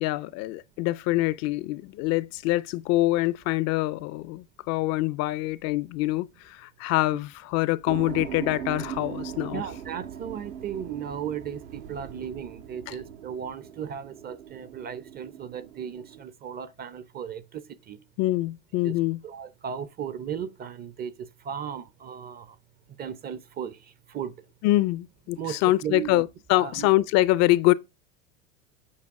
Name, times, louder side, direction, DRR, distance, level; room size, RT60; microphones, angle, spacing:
voice 1, 0.0-9.6 12.9-13.0 18.2-19.2 24.6-27.7, left 17 dB, 45° left, 0.4 m, -25 dB
sound 1, 7.9-16.2, right 9 dB, 75° right, 1.4 m, -40 dB
voice 2, 9.5-18.0 18.8-22.6 23.0-24.4 25.4-26.2 26.5-26.9, right 8 dB, 25° right, 0.5 m, -36 dB
8.6 x 4.6 x 3.5 m
hypercardioid pair, 105°, 40 cm